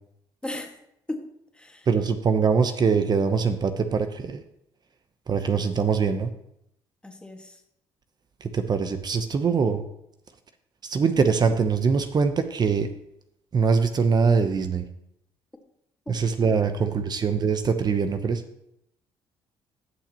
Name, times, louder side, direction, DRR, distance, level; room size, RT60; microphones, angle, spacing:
voice 1, 0.4-0.8 1.1-1.2 1.5-1.9 7.0-7.6 16.1-16.2 16.6-17.0, left 1 dB, 10° left, 2 dB, 1.9 m, -37 dB
voice 2, 1.9-4.4 5.3-6.3 8.4-9.8 10.8-12.9 13.5-14.9 16.1-18.4, right 5 dB, 45° right, 8 dB, 0.9 m, -23 dB
17.0 x 6.0 x 3.0 m, 0.79 s
supercardioid pair, 75°, 10 cm